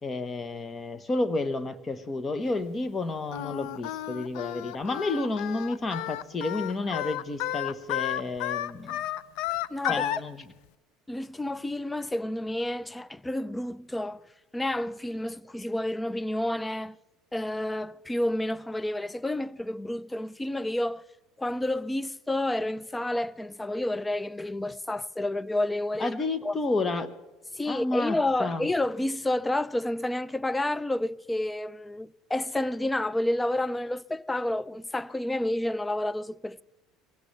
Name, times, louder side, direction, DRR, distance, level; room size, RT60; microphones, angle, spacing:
voice 1, 0.0-9.0 9.9-10.4 26.0-27.1 27.7-28.7, left 2 dB, 30° left, 1.3 m, -31 dB
Singing, 3.3-10.2, left 14 dB, 70° left, 0.6 m, -32 dB
voice 2, 9.7-10.0 11.1-14.3 14.5-17.0 17.3-21.0 21.4-26.2 26.4-26.6 27.5-36.6, left 1 dB, 10° left, 0.5 m, -30 dB
23.5 x 18.0 x 3.4 m
hypercardioid pair, 80°, 0 cm